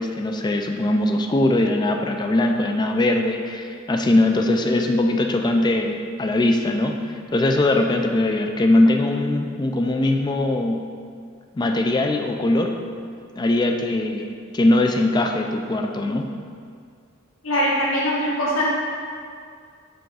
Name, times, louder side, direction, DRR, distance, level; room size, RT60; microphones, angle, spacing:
voice 1, 0.0-10.8 11.6-12.8 13.4-14.3 14.5-16.3, left 1 dB, 20° left, 3 dB, 0.3 m, -21 dB
voice 2, 17.4-18.7, equal, 80° left, -6 dB, 1.3 m, -22 dB
6.2 x 3.4 x 4.8 m, 2.2 s
head